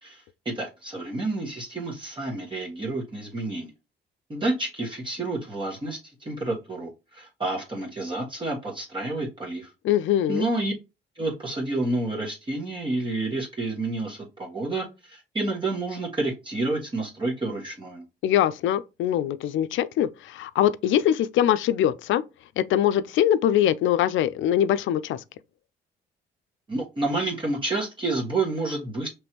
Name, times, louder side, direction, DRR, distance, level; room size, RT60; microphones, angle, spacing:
voice 1, 0.0-3.7 4.3-9.7 10.3-10.7 11.2-18.0 26.7-29.1, right 2 dB, 25° right, 1.3 m, -29 dB
voice 2, 9.8-10.5 18.2-22.2 22.6-25.2, left 11 dB, 75° left, 0.4 m, -23 dB
5.2 x 3.2 x 3.0 m
cardioid pair, 90°, 20 cm